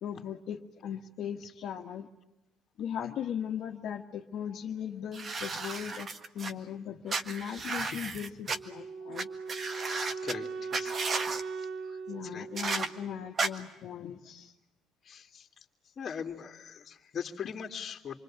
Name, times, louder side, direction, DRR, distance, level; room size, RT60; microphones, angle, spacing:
voice 1, 0.0-2.1 2.8-6.1 6.3-9.3 12.1-14.5, left 9 dB, 55° left, 1 dB, 1.7 m, -38 dB
sound 1, 5.1-6.5 7.1-8.6 9.2-9.3 9.5-10.3 10.7-11.4 12.6-12.9 13.4-13.5, right 4 dB, 30° right, 1.6 m, -33 dB
Wind instrument woodwind instrument, 8.5-13.5, right 5 dB, 50° right, 1.3 m, -40 dB
voice 2, 9.7-11.0 11.6-11.7 12.2-12.5 15.1-15.5 16.0-18.2, left 7 dB, 35° left, 4 dB, 2.6 m, -40 dB
27.5 x 24.0 x 8.9 m, 0.93 s
cardioid pair, 145°, 0 cm